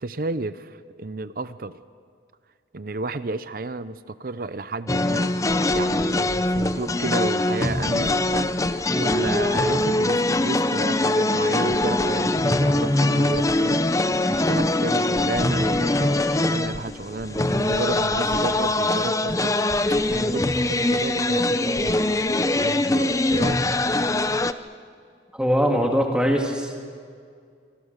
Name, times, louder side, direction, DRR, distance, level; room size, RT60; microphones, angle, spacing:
voice 1, 0.0-1.8 2.7-5.3 5.7-8.5 9.0-13.8 14.3-19.5 20.2-22.1 22.6-23.7, right 2 dB, 50° right, 13 dB, 0.7 m, -32 dB
sound 1, 4.9-24.5, left 2 dB, 20° left, 0.6 m, -22 dB
voice 2, 25.3-26.8, equal, 5° right, 1 dB, 2.0 m, -22 dB
26.0 x 25.5 x 6.7 m, 2.1 s
head